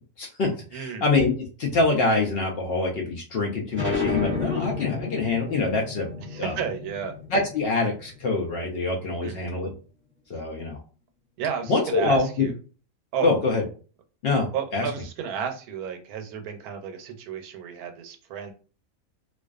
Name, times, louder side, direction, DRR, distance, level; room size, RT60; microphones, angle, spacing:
voice 1, 0.2-6.6 7.3-9.7 10.3-10.8 11.7-12.5 13.2-13.6 14.2-14.8, left 3 dB, 75° left, 0 dB, 0.5 m, -25 dB
voice 2, 0.7-1.0 6.3-7.2 9.2-9.6 11.4-12.5 13.1-13.3 14.5-18.5, right 7 dB, 90° right, 5 dB, 1.1 m, -32 dB
sound 1, 3.7-9.0, left 4 dB, 10° right, 0.6 m, -32 dB
2.4 x 2.4 x 2.3 m, 0.38 s
omnidirectional pair, 1.5 m